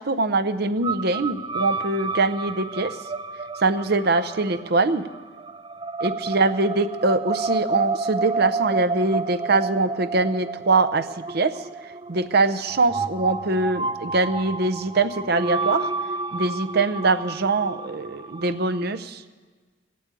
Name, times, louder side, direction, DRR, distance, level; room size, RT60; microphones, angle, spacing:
voice 1, 0.0-3.0 3.6-5.0 6.0-15.9 16.3-19.2, right 3 dB, 50° right, 11 dB, 0.7 m, -23 dB
sound 1, 0.8-19.0, right 4 dB, 25° right, 0.4 m, -31 dB
19.0 x 8.5 x 8.3 m, 1.4 s
head